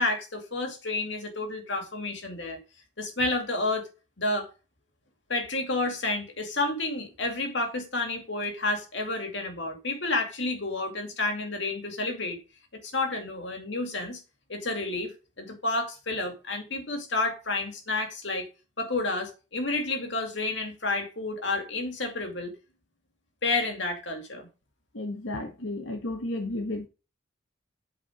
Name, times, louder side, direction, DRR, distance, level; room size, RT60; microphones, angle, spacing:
voice 1, 0.0-2.6 3.0-3.9 4.2-4.5 5.3-12.4 12.8-14.2 14.5-18.5 18.8-22.5 23.4-24.5, left 2 dB, 65° left, 2.3 m, -30 dB
voice 2, 24.9-26.9, left 2 dB, 80° left, 1.4 m, -33 dB
8.8 x 4.8 x 5.1 m
head